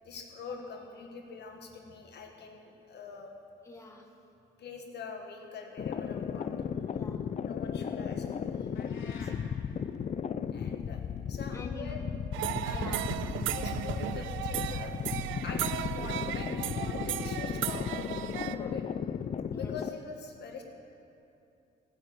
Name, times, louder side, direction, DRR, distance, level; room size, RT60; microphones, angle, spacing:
voice 1, 0.0-3.3 4.6-6.5 7.4-8.7 10.5-12.0 12.6-13.0 13.5-15.1 15.4-18.0 18.3-19.0 19.5-20.6, left 4 dB, 60° left, 2 dB, 1.6 m, -44 dB
voice 2, 3.6-4.1 6.9-7.2 9.0-9.3 11.5-11.9 12.7-13.0 18.5-18.7 19.5-19.7, left 3 dB, 15° left, 1 dB, 1.4 m, -47 dB
sound 1, 5.8-19.9, left 7 dB, 35° left, 0.4 m, -35 dB
sound 2, 8.7-9.4, left 4 dB, 85° left, 2.7 m, -49 dB
sound 3, 12.3-18.5, right 13 dB, 80° right, 0.4 m, -35 dB
17.0 x 6.2 x 7.7 m, 2.7 s
cardioid pair, 90°, 20 cm